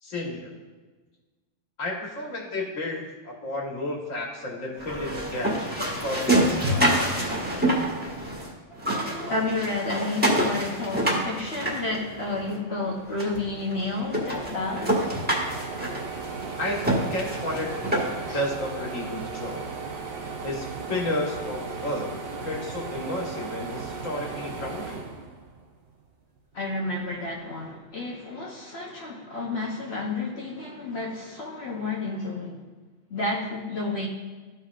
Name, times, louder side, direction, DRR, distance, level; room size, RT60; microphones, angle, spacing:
voice 1, 0.0-0.5 1.8-7.3 16.6-17.7 18.2-19.6 20.4-22.1 22.4-25.0, left 1 dB, 85° left, -1 dB, 1.9 m, -32 dB
sound 1, 4.8-8.5 8.8-12.5 13.2-13.3 13.7-13.8 14.1-18.4, right 1 dB, 10° right, 1.4 m, -27 dB
voice 2, 8.7-15.1 18.3-18.4 26.5-32.6 33.1-34.1, left 2 dB, 55° left, -2 dB, 1.1 m, -31 dB
sound 2, 13.0-13.1 13.3-25.9 26.4-27.5, right 4 dB, 55° right, 0.8 m, -36 dB
13.0 x 5.4 x 2.4 m, 1.3 s
omnidirectional pair, 1.3 m